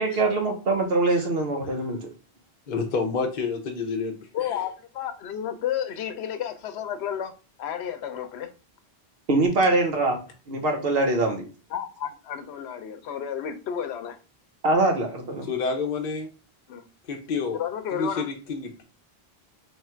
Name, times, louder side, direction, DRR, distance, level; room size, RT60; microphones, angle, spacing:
voice 1, 0.0-2.1 9.3-10.2 10.5-11.5 14.6-15.5, right 2 dB, 70° right, 3 dB, 1.1 m, -23 dB
voice 2, 2.7-4.6 15.4-16.3 17.1-17.6 17.9-18.8, left 4 dB, 50° left, 3 dB, 0.7 m, -29 dB
voice 3, 4.3-7.3 7.6-8.5 11.7-14.2 16.7-16.9 17.5-18.3, left 9 dB, 85° left, 9 dB, 0.9 m, -31 dB
3.2 x 2.4 x 4.3 m, 0.34 s
omnidirectional pair, 1.1 m